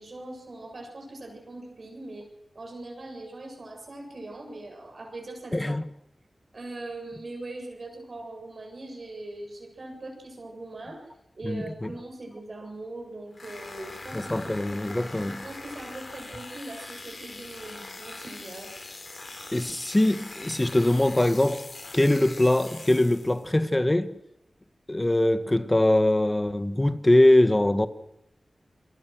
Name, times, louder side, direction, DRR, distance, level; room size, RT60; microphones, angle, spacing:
voice 1, 0.0-2.3 2.5-5.7 6.5-11.1 11.3-14.6 15.1-18.7, right 2 dB, 60° right, 7.7 m, -41 dB
voice 2, 5.5-5.8 11.4-11.9 14.1-15.4 19.5-21.7 21.9-24.2 24.9-27.9, left 1 dB, 20° left, 1.7 m, -22 dB
sound 1, 13.3-23.5, left 2 dB, 55° left, 4.3 m, -42 dB
28.0 x 23.0 x 6.4 m
cardioid pair, 50°, 0 cm